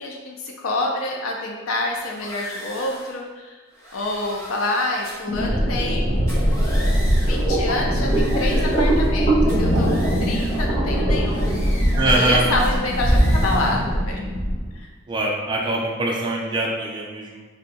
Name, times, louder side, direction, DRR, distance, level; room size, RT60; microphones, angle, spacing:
voice 1, 0.0-3.6 3.9-6.2 7.2-11.6 12.0-14.3 14.7-14.9, left 2 dB, 75° left, 0 dB, 0.5 m, -27 dB
sound 1, 1.9-3.2 3.7-5.4 6.2-7.5 7.9-9.2 9.5-10.7 11.2-12.3 12.6-13.8, equal, 10° left, 0.6 m, -39 dB
sound 2, 5.3-14.7, equal, 35° left, 0.9 m, -20 dB
voice 2, 12.0-12.4 15.1-17.5, right 2 dB, 20° right, -2 dB, 0.3 m, -23 dB
2.6 x 2.2 x 4.0 m, 1.3 s
head